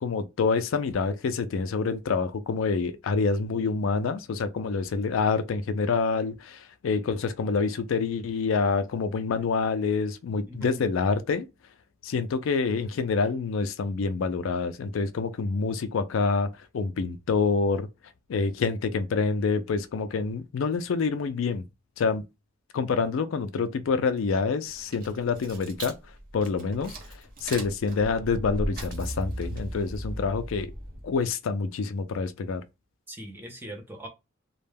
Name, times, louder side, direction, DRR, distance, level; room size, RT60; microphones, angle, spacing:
voice 1, 0.0-11.5 12.0-17.9 18.3-21.7 22.0-22.2 22.7-25.9 26.3-27.0 27.4-30.7 31.0-32.6, left 4 dB, 75° left, 0.4 m, -27 dB
voice 2, 10.5-10.8 33.1-34.1, right 1 dB, 10° right, 0.6 m, -40 dB
sound 1, 24.7-31.2, right 1 dB, 45° right, 0.8 m, -37 dB
2.2 x 2.1 x 3.3 m
head